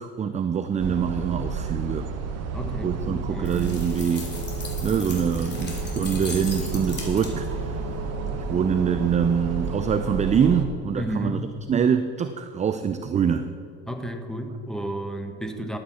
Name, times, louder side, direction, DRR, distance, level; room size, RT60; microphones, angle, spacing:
voice 1, 0.0-2.1 2.8-4.3 4.6-7.5 8.3-11.4 11.7-13.5, right 7 dB, 20° right, 9 dB, 0.4 m, -24 dB
sound 1, 0.8-10.7, right 4 dB, 50° right, 1.2 m, -31 dB
voice 2, 2.5-3.8 10.9-11.4 13.9-15.8, right 1 dB, ahead, 4 dB, 1.3 m, -32 dB
sound 2, 3.4-7.6, left 3 dB, 30° left, 2.8 m, -39 dB
Telephone, 3.5-10.5, left 12 dB, 75° left, 1.5 m, -41 dB
12.0 x 8.6 x 4.3 m, 2.5 s
hypercardioid pair, 80°, 33 cm